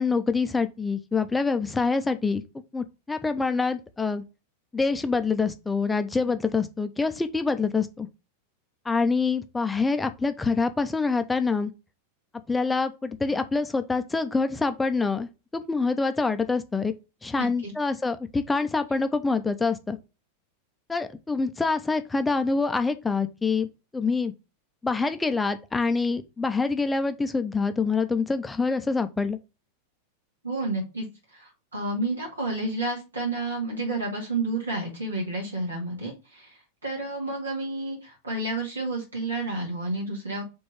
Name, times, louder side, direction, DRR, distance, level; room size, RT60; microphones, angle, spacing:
voice 1, 0.0-2.4 2.7-4.2 4.7-8.1 8.9-11.7 12.5-16.9 17.2-20.0 20.9-23.7 23.9-24.3 24.8-29.4, left 4 dB, 10° left, 0.7 m, -26 dB
voice 2, 17.4-17.7 30.4-31.1 31.3-40.4, right 2 dB, 75° right, 2.3 m, -30 dB
5.1 x 3.5 x 5.5 m
figure-of-eight pair, 90°, 0 cm